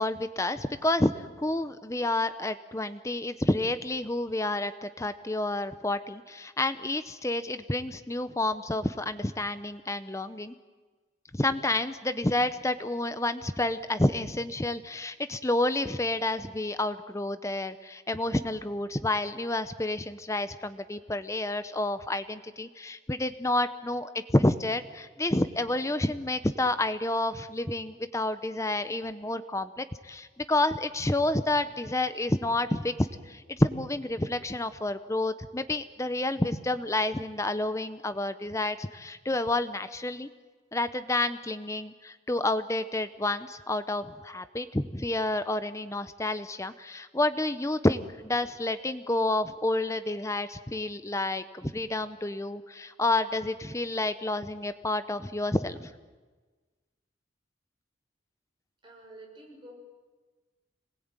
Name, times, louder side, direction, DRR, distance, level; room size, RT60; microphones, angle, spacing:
voice 1, 0.0-10.5 11.3-32.9 33.3-40.3 40.7-55.9, left 2 dB, 15° left, 11 dB, 0.7 m, -29 dB
voice 2, 58.8-59.7, right 1 dB, 25° right, -1 dB, 6.7 m, -49 dB
26.5 x 20.0 x 9.0 m, 1.4 s
head